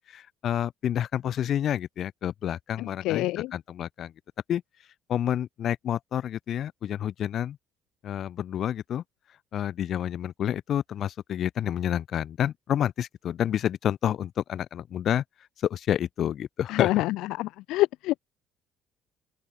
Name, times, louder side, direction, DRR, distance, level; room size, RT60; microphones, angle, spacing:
voice 1, 0.0-4.1 4.5-4.6 5.1-7.6 8.0-9.0 9.5-15.2 15.6-17.0, left 10 dB, 45° left, 2.2 m, -29 dB
voice 2, 2.8-3.5 16.7-17.1 17.4-18.2, left 18 dB, 80° left, 0.5 m, -26 dB
open air
cardioid pair, 160°, 0 cm